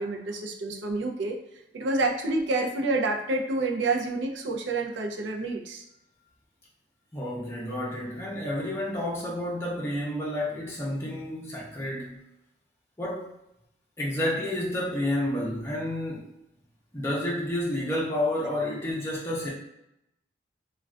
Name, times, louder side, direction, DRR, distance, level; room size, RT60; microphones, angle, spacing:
voice 1, 0.0-1.4 1.7-5.8, right 2 dB, 85° right, 2 dB, 0.5 m, -28 dB
voice 2, 7.1-12.2 13.0-13.3 14.0-16.3 16.9-19.5, left 1 dB, 15° left, -5 dB, 0.5 m, -30 dB
2.3 x 2.2 x 3.4 m, 0.86 s
head